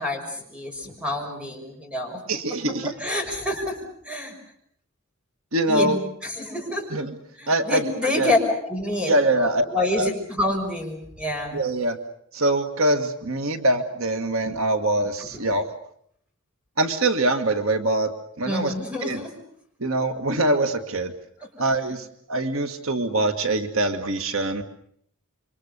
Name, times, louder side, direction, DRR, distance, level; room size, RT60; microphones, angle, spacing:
voice 1, 0.0-2.2 2.7-3.8 4.0-4.3 5.7-6.9 7.4-8.4 8.7-11.6 15.2-15.3 18.4-19.3, left 1 dB, 5° right, 3 dB, 5.9 m, -28 dB
voice 2, 2.3-2.9 5.5-6.0 6.9-7.1 7.5-7.8 8.2-8.3 9.1-9.7 10.0-10.1 11.5-12.0 12.3-15.7 16.8-18.1 18.4-18.7 19.0-19.2 19.8-21.1 21.6-24.6, right 2 dB, 75° right, 7 dB, 1.7 m, -23 dB
27.5 x 24.5 x 6.7 m, 0.66 s
head